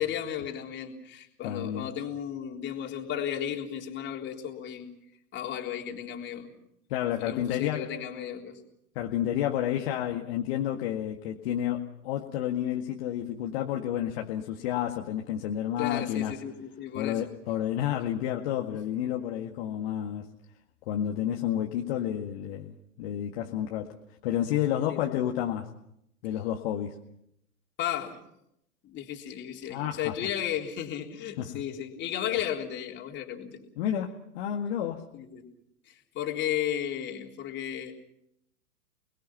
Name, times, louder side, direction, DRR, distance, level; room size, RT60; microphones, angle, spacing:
voice 1, 0.0-4.9 5.3-6.5 7.2-8.6 15.8-17.2 24.9-25.2 27.8-28.2 28.8-33.6 35.1-35.4 35.9-37.9, left 10 dB, 25° left, 2 dB, 3.7 m, -34 dB
voice 2, 1.4-1.9 6.9-8.0 9.0-16.4 16.9-20.3 20.9-23.9 24.2-25.7 26.2-27.0 29.7-30.1 31.4-31.6 33.8-35.0, left 11 dB, 40° left, 2 dB, 2.0 m, -30 dB
30.0 x 21.0 x 5.9 m, 0.76 s
figure-of-eight pair, 110°, 45 cm